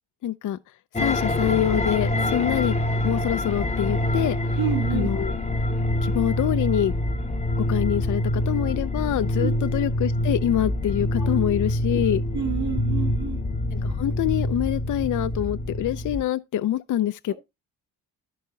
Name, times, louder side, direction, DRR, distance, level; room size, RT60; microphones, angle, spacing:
voice 1, 0.2-0.6 1.0-2.7 3.0-4.4 4.9-5.3 6.0-6.9 7.6-12.2 13.8-17.3, left 12 dB, 55° left, 0.5 m, -25 dB
sound 1, 1.0-16.2, left 1 dB, 15° left, 0.8 m, -25 dB
voice 2, 4.6-5.1 9.4-9.5 11.2-11.3 12.3-13.4, right 8 dB, 80° right, 2.9 m, -29 dB
14.0 x 4.7 x 2.7 m
cardioid pair, 80°, 37 cm